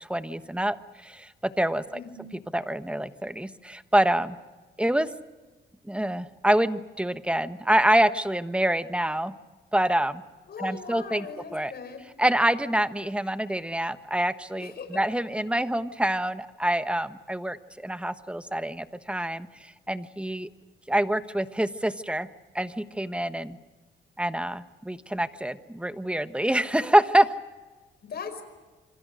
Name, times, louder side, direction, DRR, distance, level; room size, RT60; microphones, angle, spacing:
voice 1, 0.0-2.0 2.5-4.4 4.8-5.1 5.9-9.3 9.7-10.2 10.6-11.3 11.5-11.7 12.2-20.5 20.9-22.3 22.5-23.6 24.2-27.3, right 1 dB, 5° right, 11 dB, 1.3 m, -26 dB
voice 2, 1.9-2.3 10.5-12.1 14.6-15.0 28.0-28.4, left 5 dB, 60° left, 8 dB, 5.3 m, -39 dB
27.5 x 25.5 x 6.4 m, 1.3 s
cardioid pair, 90°, 19 cm